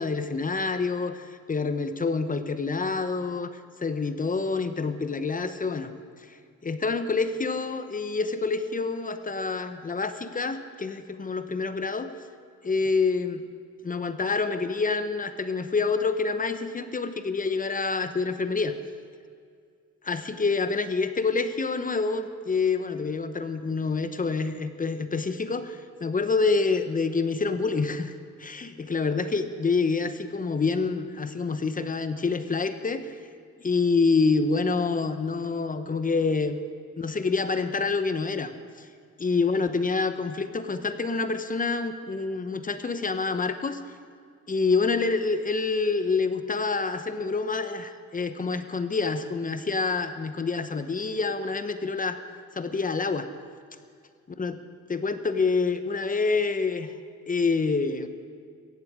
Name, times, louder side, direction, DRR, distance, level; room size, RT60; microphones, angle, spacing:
voice 1, 0.0-5.9 6.2-6.4 6.6-12.1 12.6-13.4 13.8-18.7 20.0-28.1 28.4-33.2 33.6-36.6 37.0-38.5 38.8-38.9 39.2-43.8 44.5-52.2 52.5-53.3 54.4-54.6 54.9-56.9 57.3-58.1, left 4 dB, 25° left, 10 dB, 0.9 m, -27 dB
16.5 x 15.0 x 4.9 m, 2.1 s
cardioid pair, 90°, 30 cm